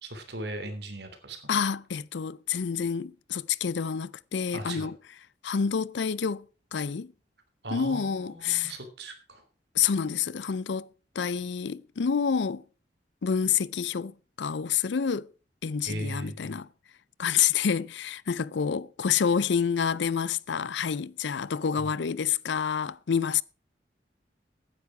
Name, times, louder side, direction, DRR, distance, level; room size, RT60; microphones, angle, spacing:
voice 1, 0.0-1.4 4.5-4.9 7.6-9.4 15.8-16.6 21.8-21.9, right 1 dB, 70° right, 3.1 m, -38 dB
voice 2, 1.5-5.0 5.4-6.5 6.7-7.1 7.7-8.7 9.7-10.9 11.2-12.6 13.2-15.3 15.6-16.7 17.2-23.4, left 7 dB, 85° left, 0.5 m, -28 dB
15.5 x 9.5 x 4.8 m
head